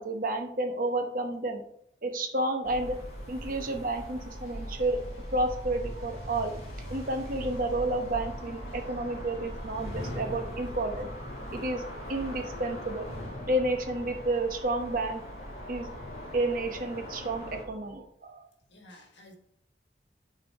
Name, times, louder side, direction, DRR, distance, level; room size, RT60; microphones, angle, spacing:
voice 1, 0.0-1.6 2.0-3.0 3.3-5.0 5.3-6.6 6.9-11.1 11.5-11.8 12.1-13.1 13.5-15.2 15.7-15.9 16.3-18.5, right 2 dB, 50° right, 6 dB, 0.9 m, -30 dB
sound 1, 2.6-17.6, equal, 40° left, 2.8 m, -40 dB
sound 2, 4.0-18.0, right 2 dB, 85° right, 2.2 m, -54 dB
voice 2, 18.7-19.3, left 1 dB, 85° left, 3 dB, 1.5 m, -54 dB
6.9 x 4.1 x 4.4 m, 0.71 s
head